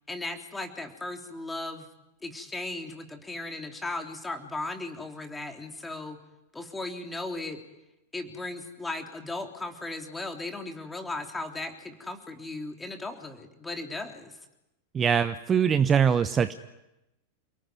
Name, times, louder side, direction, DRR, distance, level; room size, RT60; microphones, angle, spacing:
voice 1, 0.1-1.9 2.2-6.2 6.5-7.6 8.1-14.4, left 2 dB, 10° left, 4 dB, 3.5 m, -36 dB
voice 2, 14.9-16.5, right 7 dB, 20° right, 12 dB, 1.0 m, -22 dB
28.5 x 18.5 x 9.7 m, 0.92 s
figure-of-eight pair, 90°, 0 cm